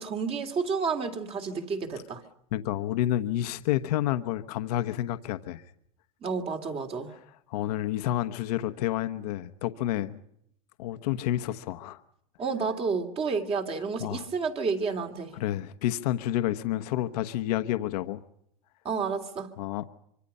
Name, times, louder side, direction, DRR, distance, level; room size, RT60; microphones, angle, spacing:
voice 1, 0.0-2.2 6.2-7.1 12.4-15.3 18.8-19.5, right 5 dB, 30° right, 6 dB, 2.6 m, -30 dB
voice 2, 2.5-5.6 7.5-10.2 10.8-12.0 14.0-14.3 15.3-18.2 19.6-19.8, left 13 dB, 70° left, 10 dB, 1.2 m, -29 dB
25.0 x 25.0 x 5.5 m, 0.73 s
supercardioid pair, 130°, 20 cm